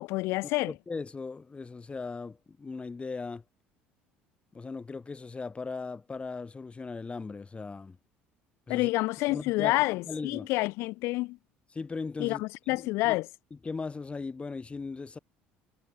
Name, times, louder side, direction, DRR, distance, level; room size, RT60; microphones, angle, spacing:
voice 1, 0.0-0.7 8.7-11.4 12.2-13.3, left 21 dB, 75° left, 4.3 m, -28 dB
voice 2, 0.7-3.4 4.5-8.0 8.7-8.9 9.3-10.5 11.7-13.2 13.6-15.2, left 4 dB, 25° left, 4.1 m, -38 dB
supercardioid pair, 75°, 5 cm